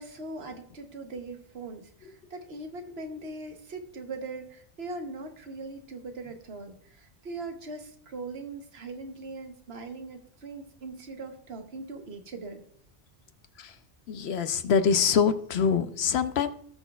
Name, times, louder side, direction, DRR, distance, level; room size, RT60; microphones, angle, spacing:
voice 1, 0.0-12.6, right 3 dB, 65° right, 6 dB, 1.2 m, -40 dB
voice 2, 14.1-16.5, left 6 dB, 70° left, 11 dB, 0.8 m, -24 dB
18.0 x 6.1 x 2.3 m, 0.63 s
omnidirectional pair, 1.2 m